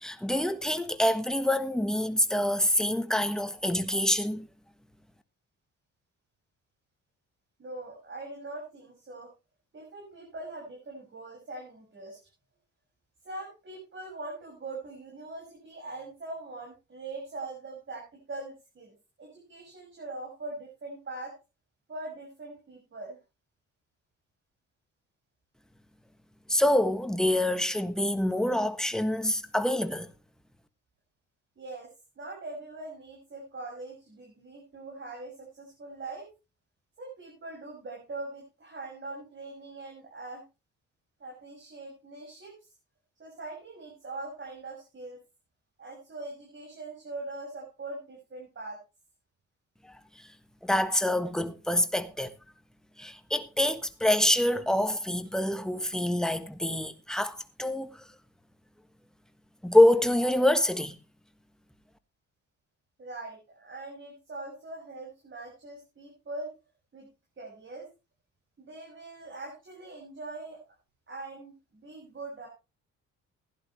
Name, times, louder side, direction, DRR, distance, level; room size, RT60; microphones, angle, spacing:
voice 1, 0.0-4.5 26.5-30.1 49.8-50.3 50.6-52.3 53.0-58.1 59.6-61.0, left 1 dB, ahead, 1.3 m, -26 dB
voice 2, 7.6-9.3 9.7-12.2 13.2-21.3 21.9-23.2 31.6-36.3 37.0-40.4 41.2-42.5 43.2-45.2 45.8-48.8 63.0-66.5 66.9-67.1 67.4-67.9 68.6-70.6 71.1-72.5, right 2 dB, 40° right, 6.0 m, -42 dB
16.0 x 11.0 x 3.2 m
cardioid pair, 90°, 30 cm